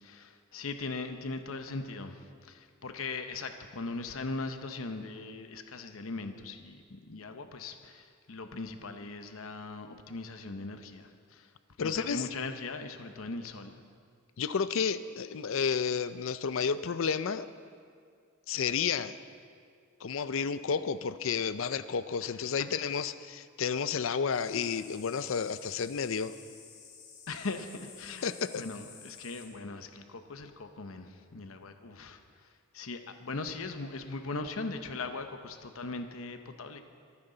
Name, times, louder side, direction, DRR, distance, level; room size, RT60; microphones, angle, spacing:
voice 1, 0.0-11.5 11.8-13.8 22.2-22.7 27.3-28.3 28.5-36.8, left 3 dB, 90° left, 7 dB, 0.9 m, -40 dB
voice 2, 11.8-12.2 14.4-17.5 18.5-19.1 20.0-26.3 28.2-28.6, left 6 dB, 70° left, 14 dB, 0.5 m, -31 dB
sound 1, 24.3-29.5, left 6 dB, 55° left, 2.1 m, -52 dB
23.5 x 9.6 x 3.9 m, 2.2 s
head